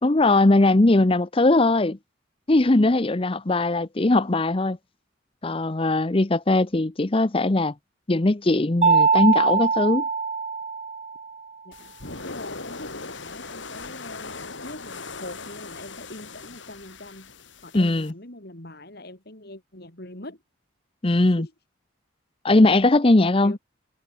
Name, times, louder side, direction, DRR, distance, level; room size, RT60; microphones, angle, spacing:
voice 1, 0.0-2.0 2.5-4.8 5.4-7.7 8.1-10.0 17.7-18.1 21.0-21.5 22.4-23.5, left 2 dB, 30° left, 0.7 m, -20 dB
Mallet percussion, 8.8-11.3, right 5 dB, 35° right, 0.8 m, -22 dB
voice 2, 11.6-20.4 21.0-21.5 23.4-23.6, left 1 dB, 55° left, 4.3 m, -43 dB
sound 1, 11.7-18.1, left 3 dB, 70° left, 4.6 m, -39 dB
head